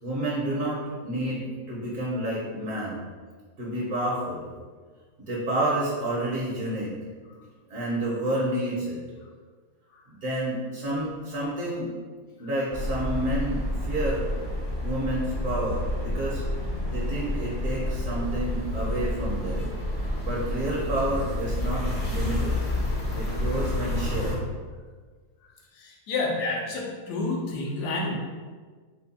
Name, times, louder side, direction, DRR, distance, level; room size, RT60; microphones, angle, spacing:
voice 1, 0.0-3.0 3.6-4.5 5.3-6.9 7.7-9.0 10.1-11.9 12.4-14.3 14.8-16.4 16.9-19.7 20.2-22.6 23.1-24.4, right 1 dB, 60° right, -6 dB, 1.2 m, -29 dB
sound 1, 12.7-24.4, left 1 dB, 45° left, 0.7 m, -29 dB
voice 2, 25.8-28.1, left 3 dB, 90° left, -1 dB, 1.3 m, -29 dB
4.4 x 2.2 x 4.0 m, 1.5 s
omnidirectional pair, 1.7 m